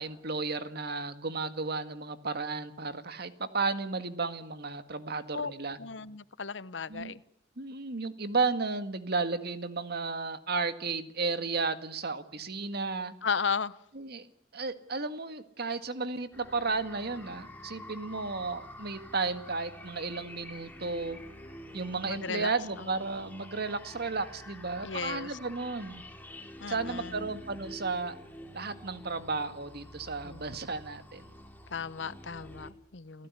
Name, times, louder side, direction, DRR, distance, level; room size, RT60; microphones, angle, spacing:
voice 1, 0.0-5.8 6.9-7.1 7.6-13.1 13.9-14.3 14.5-21.2 21.7-26.0 26.7-28.2 28.5-31.3 33.2-33.3, right 4 dB, 60° right, 1.9 m, -33 dB
voice 2, 5.8-7.2 13.2-13.8 22.0-22.5 22.8-22.9 24.8-25.4 26.6-27.3 30.2-30.4 31.7-33.3, left 5 dB, 70° left, 0.9 m, -35 dB
sound 1, 16.3-32.7, left 1 dB, 10° left, 3.0 m, -48 dB
29.5 x 16.0 x 9.8 m
head